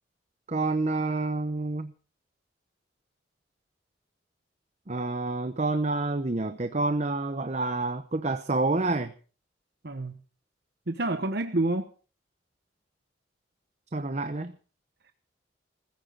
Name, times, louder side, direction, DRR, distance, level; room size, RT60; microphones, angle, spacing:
voice 1, 0.5-1.9 4.9-9.1 13.9-14.5, right 2 dB, 35° right, 9 dB, 0.8 m, -28 dB
voice 2, 9.8-10.2 10.9-11.9 15.0-15.1, right 2 dB, 55° right, 7 dB, 1.1 m, -28 dB
21.5 x 15.5 x 3.9 m, 0.38 s
head